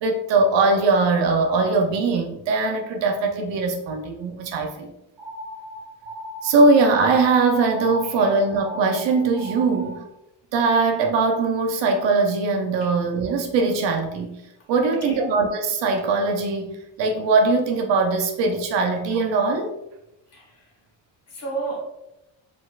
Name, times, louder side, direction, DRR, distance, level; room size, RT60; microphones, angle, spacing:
voice 1, 0.0-4.9 6.4-9.9 10.5-14.4 14.7-19.7, right 3 dB, 65° right, 4 dB, 0.7 m, -21 dB
sound 1, 5.2-10.1, equal, 5° right, 1.3 m, -37 dB
voice 2, 9.6-9.9 12.8-12.9 14.8-15.3 20.3-20.7 21.3-21.8, right 3 dB, 30° left, -2 dB, 1.5 m, -34 dB
4.7 x 4.0 x 2.5 m, 0.88 s
cardioid pair, 165°, 47 cm